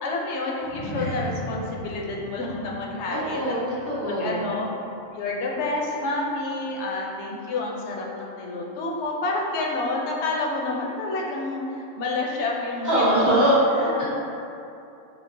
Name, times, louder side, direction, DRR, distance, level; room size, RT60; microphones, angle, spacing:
voice 1, 0.0-3.5 4.1-4.7 5.1-14.1, left 2 dB, 65° left, -2 dB, 0.8 m, -29 dB
sound 1, 0.6-5.2 5.5-5.8 6.3-6.4, equal, 70° right, 1.8 m, -38 dB
voice 2, 3.1-4.5 12.8-14.1, right 1 dB, 25° right, -10 dB, 0.4 m, -22 dB
5.0 x 2.0 x 2.6 m, 2.7 s
omnidirectional pair, 1.3 m